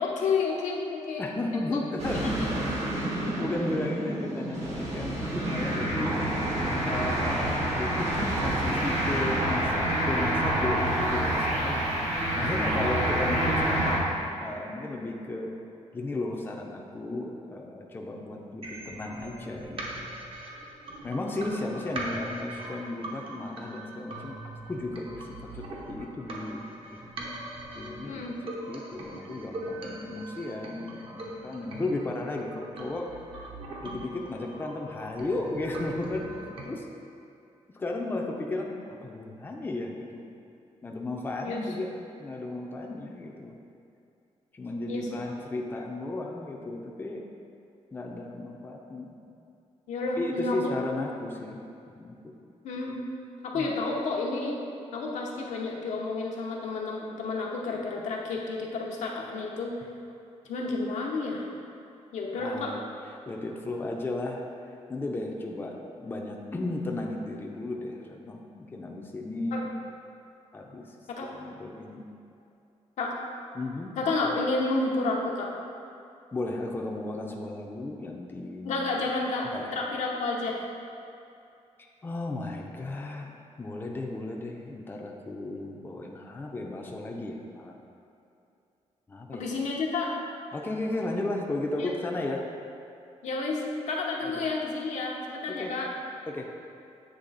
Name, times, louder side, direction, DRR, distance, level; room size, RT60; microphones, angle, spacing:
voice 1, 0.0-1.2 1.6-1.8 2.2-2.5 28.1-28.3 41.4-41.9 44.9-45.1 49.9-50.6 52.6-53.0 53.4-54.6 54.9-59.7 60.5-61.5 62.1-62.7 69.5-69.6 71.1-71.3 73.0-73.1 74.0-75.5 78.6-80.7 89.3-90.1 91.8-91.9 93.2-95.9, left 3 dB, 80° left, -1 dB, 0.8 m, -30 dB
voice 2, 1.2-2.4 3.4-6.2 6.8-12.0 12.3-14.1 14.4-15.5 15.9-20.1 20.4-20.6 21.0-26.6 27.0-27.1 27.8-28.2 28.7-33.5 33.8-36.3 36.6-36.8 37.7-40.2 40.8-41.9 42.2-43.6 44.5-47.3 47.9-49.2 50.2-51.6 51.9-52.3 53.5-53.8 62.4-62.8 63.3-64.4 64.9-69.7 70.5-71.0 71.3-72.0 73.5-73.9 76.3-78.8 79.5-79.7 81.8-83.3 83.6-87.8 89.1-89.4 90.5-92.4 94.2-94.5 95.5-95.7 96.3-96.5, left 2 dB, 20° left, 0 dB, 0.5 m, -34 dB
sound 1, 2.0-14.0, right 1 dB, 65° right, 1.4 m, -28 dB
sound 2, 18.6-36.6, right 1 dB, 50° right, 0.8 m, -41 dB
8.1 x 3.2 x 4.0 m, 2.6 s
cardioid pair, 130°, 12 cm